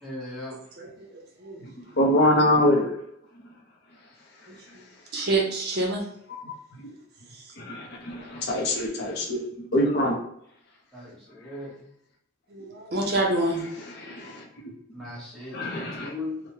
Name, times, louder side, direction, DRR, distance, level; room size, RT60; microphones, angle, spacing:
voice 1, 0.0-0.6 8.6-8.7 10.9-11.7 14.9-16.4, left 2 dB, 5° left, -7 dB, 0.9 m, -38 dB
voice 2, 0.8-1.6 4.7-4.8 5.1-6.0 7.4-7.5 12.5-13.6, right 2 dB, 50° right, 0 dB, 0.6 m, -27 dB
voice 3, 2.0-2.9 6.5-6.6 7.6-10.2 14.0-14.4 15.5-16.1, left 1 dB, 50° left, 0 dB, 0.5 m, -24 dB
3.0 x 2.0 x 2.7 m, 0.75 s
head